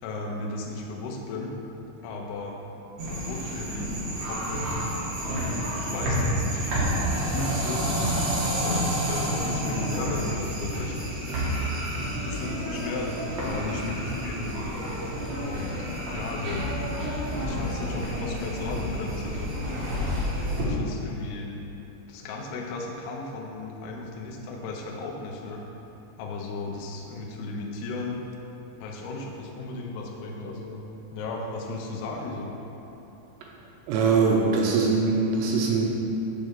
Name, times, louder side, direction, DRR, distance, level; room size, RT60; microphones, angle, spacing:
voice 1, 0.0-1.5 2.0-2.6 3.1-3.9 4.3-4.8 5.2-6.7 7.1-8.3 8.6-11.0 12.3-14.7 15.4-16.7 17.4-19.5 20.5-21.5 22.1-25.6 26.2-28.2 28.8-30.8 31.1-32.5, left 3 dB, 80° left, -1 dB, 2.4 m, -35 dB
sound 1, 3.0-20.6, equal, 65° right, 1.8 m, -29 dB
voice 2, 33.9-35.8, right 4 dB, 80° right, -1 dB, 2.6 m, -22 dB
7.5 x 6.7 x 3.6 m, 3.0 s
omnidirectional pair, 5.4 m